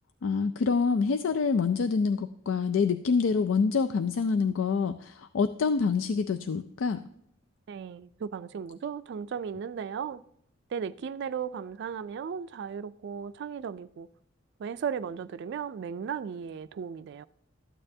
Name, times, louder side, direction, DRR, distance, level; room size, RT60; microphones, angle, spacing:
voice 1, 0.2-7.0, left 5 dB, 90° left, 0.4 m, -26 dB
voice 2, 7.7-10.2 10.7-14.1 14.6-17.3, right 7 dB, 60° right, 0.3 m, -36 dB
13.0 x 8.8 x 2.7 m
head